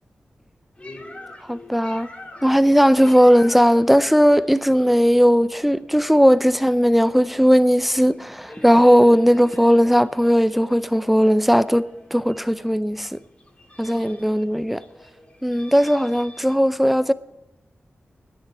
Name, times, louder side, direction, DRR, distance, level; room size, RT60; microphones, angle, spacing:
sound 1, 0.8-16.6, left 1 dB, 25° left, 2.1 m, -45 dB
voice 1, 1.5-2.1 2.4-13.2 13.8-14.8 15.4-17.1, equal, 5° right, 0.5 m, -17 dB
11.0 x 9.6 x 8.9 m
wide cardioid pair, 70°, 5 cm